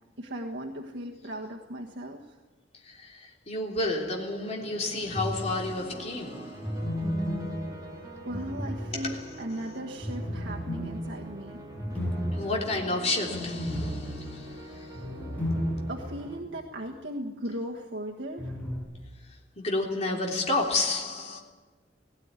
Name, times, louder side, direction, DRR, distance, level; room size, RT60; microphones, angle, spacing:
voice 1, 0.2-2.4 8.2-11.6 15.9-18.6, right 1 dB, 80° right, 1.5 m, -37 dB
voice 2, 2.8-6.9 8.9-9.3 12.3-14.9 19.6-21.4, left 2 dB, 35° left, 3.5 m, -31 dB
sound 1, 4.4-16.4, right 1 dB, 20° right, 3.3 m, -45 dB
sound 2, 5.1-5.8 6.6-9.4 10.0-16.2 16.5-16.6 18.4-18.8, equal, 10° left, 6.4 m, -33 dB
18.0 x 17.5 x 9.7 m
head